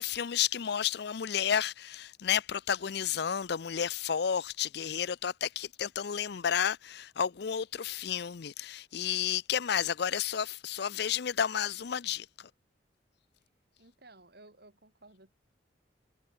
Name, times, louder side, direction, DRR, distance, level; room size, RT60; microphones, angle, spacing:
voice 1, 0.0-12.5, left 8 dB, 60° left, 0.5 m, -31 dB
voice 2, 13.8-15.3, right 2 dB, 60° right, 5.7 m, -56 dB
head